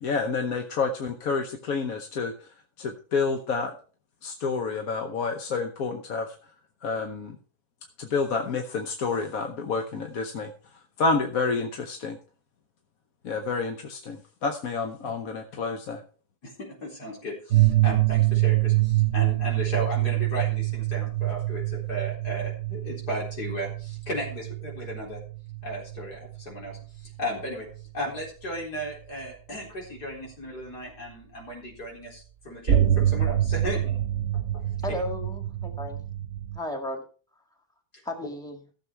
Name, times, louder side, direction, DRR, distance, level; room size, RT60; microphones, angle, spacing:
voice 1, 0.0-2.5 2.8-3.7 4.2-6.3 6.8-7.4 8.0-10.5 11.0-12.2 13.2-16.0, left 4 dB, 65° left, 5 dB, 1.4 m, -29 dB
voice 2, 16.4-25.2 25.6-27.7 27.9-34.0 34.5-34.6, equal, 90° left, -1 dB, 4.6 m, -35 dB
sound 1, 17.5-26.8 27.8-27.9 32.7-36.6, right 14 dB, 55° right, 1.1 m, -25 dB
voice 3, 34.8-36.0 36.5-37.0 38.0-38.6, left 1 dB, ahead, 2 dB, 1.8 m, -34 dB
14.5 x 7.1 x 4.5 m, 0.39 s
omnidirectional pair, 1.7 m